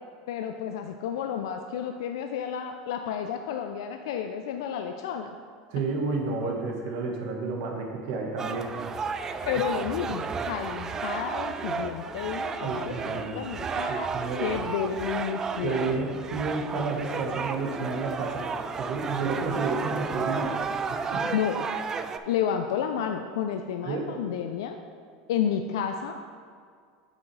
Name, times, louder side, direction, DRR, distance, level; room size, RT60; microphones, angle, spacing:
voice 1, 0.3-5.3 9.5-14.1 14.4-15.8 21.3-21.7 22.3-24.8 25.3-26.1, left 8 dB, 85° left, 6 dB, 0.4 m, -31 dB
voice 2, 5.7-8.8 12.6-13.4 13.9-14.5 15.6-18.4 18.8-20.6 20.9-21.3 23.8-24.1, right 3 dB, 65° right, 0 dB, 1.3 m, -31 dB
sound 1, 8.4-22.2, right 5 dB, 20° right, 0.3 m, -32 dB
8.2 x 6.1 x 3.2 m, 2.1 s
supercardioid pair, 135°, 2 cm